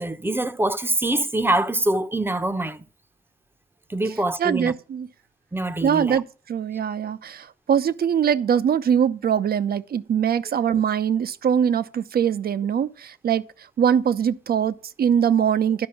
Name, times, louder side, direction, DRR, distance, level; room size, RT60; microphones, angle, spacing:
voice 1, 0.0-2.8 3.9-4.7 5.5-6.2, right 1 dB, 10° right, 0.8 m, -24 dB
voice 2, 4.4-5.1 5.8-13.4 13.8-15.9, right 8 dB, 50° right, 0.7 m, -22 dB
11.5 x 5.1 x 7.0 m
cardioid pair, 90°, 20 cm